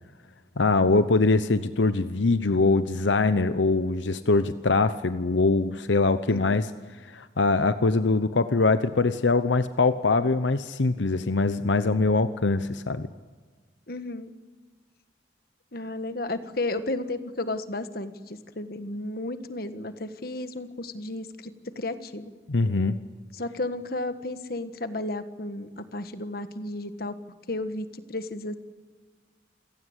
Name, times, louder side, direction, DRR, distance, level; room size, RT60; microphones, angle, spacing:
voice 1, 0.6-6.7 7.1-13.1 22.5-23.0, left 3 dB, 85° left, 12 dB, 0.8 m, -23 dB
voice 2, 13.9-14.3 15.7-22.3 23.3-27.1 27.5-28.6, left 2 dB, 55° left, 10 dB, 1.5 m, -33 dB
28.0 x 17.5 x 8.2 m, 1.5 s
head